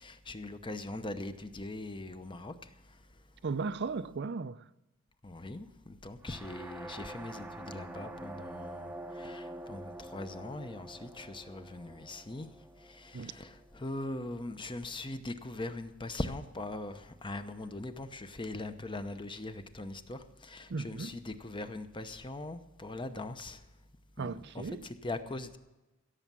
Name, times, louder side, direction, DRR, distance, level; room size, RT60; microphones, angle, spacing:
voice 1, 0.0-2.7 5.2-12.5 12.9-23.6 24.2-25.6, left 2 dB, 25° left, 0.8 m, -41 dB
voice 2, 3.4-4.6 13.1-13.3 20.7-21.1 24.2-24.8, right 4 dB, 55° right, 0.5 m, -36 dB
sound 1, 6.2-14.1, right 1 dB, 10° right, 0.7 m, -46 dB
16.5 x 7.2 x 7.5 m
head